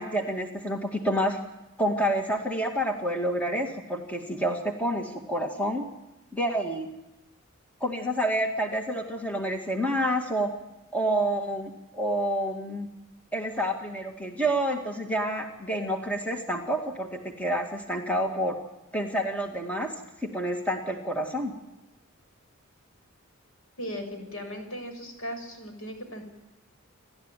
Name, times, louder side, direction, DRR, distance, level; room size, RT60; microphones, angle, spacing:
voice 1, 0.0-1.4 1.8-5.8 6.3-6.9 7.8-10.5 10.9-12.9 13.3-18.6 18.9-19.9 20.2-21.5, right 1 dB, 5° left, 2 dB, 2.1 m, -28 dB
voice 2, 23.8-26.2, equal, 75° left, 5 dB, 6.4 m, -37 dB
29.0 x 13.0 x 9.2 m, 0.98 s
head